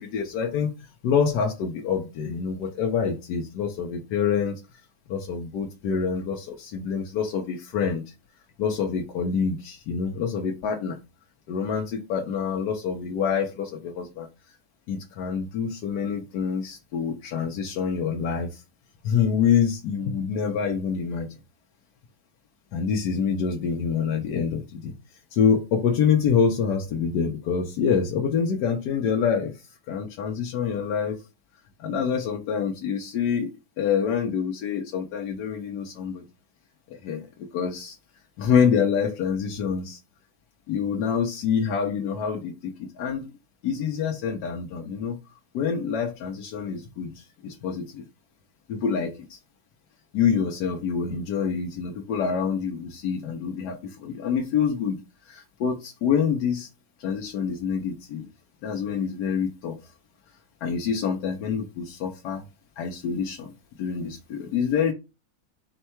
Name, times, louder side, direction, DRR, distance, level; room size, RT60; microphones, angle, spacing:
voice 1, 0.0-4.6 5.1-8.0 8.6-11.0 11.5-14.6 14.9-18.6 19.0-21.3 22.7-24.9 25.3-31.2 31.8-33.5 33.8-36.2 36.9-37.3 37.5-38.0 38.4-40.0 40.7-43.3 43.6-45.2 45.5-48.0 48.7-49.4 50.1-55.0 55.2-56.7 57.0-58.3 58.6-59.8 60.6-62.4 62.8-63.5 63.8-64.9, left 6 dB, 85° left, 2 dB, 1.2 m, -26 dB
4.5 x 2.2 x 4.3 m, 0.28 s
omnidirectional pair, 1.8 m